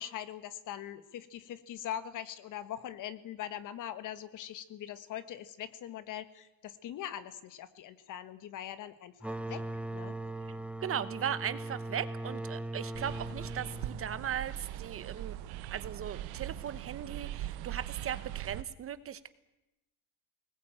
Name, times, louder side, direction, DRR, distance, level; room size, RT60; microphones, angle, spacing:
voice 1, 0.0-9.7 9.9-10.2, left 11 dB, 55° left, 13 dB, 1.4 m, -42 dB
sound 1, 9.2-14.7, right 2 dB, 5° right, 0.7 m, -40 dB
voice 2, 10.8-15.4 15.7-19.3, right 9 dB, 40° right, 14 dB, 1.1 m, -38 dB
sound 2, 12.9-18.6, right 14 dB, 90° right, 1.0 m, -41 dB
20.5 x 19.5 x 8.9 m, 0.96 s
cardioid pair, 140°, 36 cm